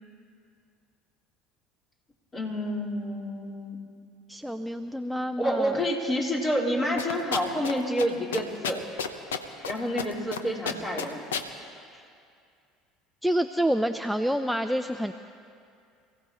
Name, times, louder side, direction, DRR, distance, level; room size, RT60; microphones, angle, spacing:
voice 1, 2.3-3.8 5.4-8.8 9.6-11.2, equal, 30° left, -3 dB, 4.4 m, -28 dB
voice 2, 4.3-5.8 13.2-15.1, equal, ahead, 7 dB, 0.6 m, -28 dB
sound 1, 7.0-7.7 8.0-8.1 8.3-9.7 10.0-10.4 10.7-11.5, left 7 dB, 85° left, 0.9 m, -30 dB
28.0 x 16.5 x 3.1 m, 2.4 s
hypercardioid pair, 70°, 0 cm